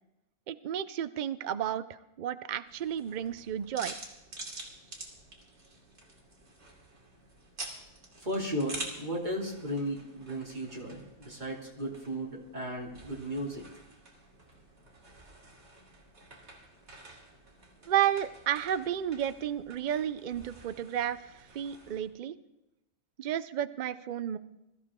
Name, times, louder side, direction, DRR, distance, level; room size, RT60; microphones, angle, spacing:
voice 1, 0.5-3.9 17.9-22.4 23.2-24.4, right 10 dB, 90° right, 14 dB, 0.4 m, -32 dB
sound 1, 2.7-22.1, right 2 dB, 50° right, 2.9 m, -48 dB
voice 2, 8.2-13.6, equal, 30° right, -1 dB, 2.9 m, -35 dB
21.0 x 13.5 x 3.7 m, 0.96 s
omnidirectional pair, 1.5 m